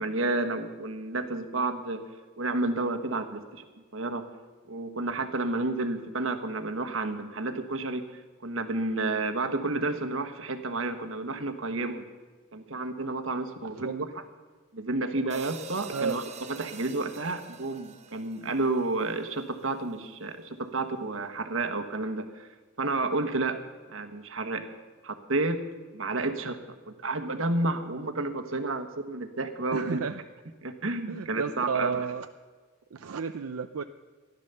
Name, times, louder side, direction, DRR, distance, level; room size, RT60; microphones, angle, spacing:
voice 1, 0.0-2.1 2.4-3.6 3.9-4.3 4.7-12.0 12.5-13.9 14.7-16.2 16.5-22.5 22.8-23.6 23.9-24.7 25.0-25.7 25.9-26.6 27.0-30.0 30.6-32.0, right 2 dB, 65° right, 6 dB, 1.3 m, -31 dB
sound 1, 15.3-19.7, right 6 dB, 30° right, 0.9 m, -46 dB
voice 2, 29.7-30.2 31.1-32.3 32.9-33.8, right 5 dB, 90° right, 8 dB, 0.5 m, -32 dB
15.5 x 11.5 x 6.9 m, 1.4 s
head